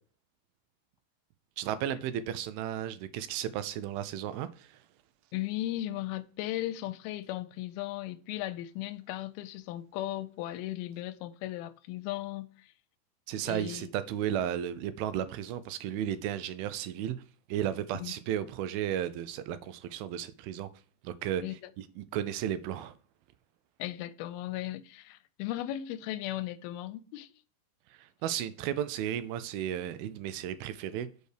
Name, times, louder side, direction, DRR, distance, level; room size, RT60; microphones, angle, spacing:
voice 1, 1.6-4.8 13.3-17.2 17.5-20.7 21.0-23.0 28.0-31.1, right 10 dB, 85° right, 2.5 m, -34 dB
voice 2, 5.3-12.7 13.5-13.9 18.0-18.1 21.4-21.6 23.8-27.3, left 14 dB, 90° left, 2.5 m, -36 dB
6.2 x 5.4 x 6.6 m
omnidirectional pair, 4.3 m